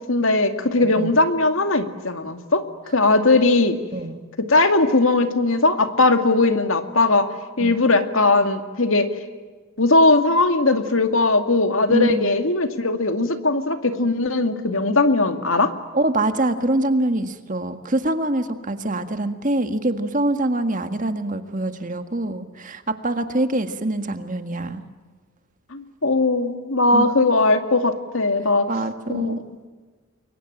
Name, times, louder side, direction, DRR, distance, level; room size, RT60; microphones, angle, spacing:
voice 1, 0.1-2.6 2.9-3.8 4.5-7.3 7.6-9.1 9.8-15.7 25.7-28.7 29.1-29.3, left 2 dB, 65° left, 8 dB, 2.3 m, -19 dB
voice 2, 0.7-1.2 3.9-4.2 7.6-7.8 11.9-12.3 15.9-24.8 26.9-27.1 28.7-29.4, right 1 dB, 35° right, 8 dB, 1.7 m, -24 dB
29.5 x 22.5 x 8.9 m, 1.4 s
head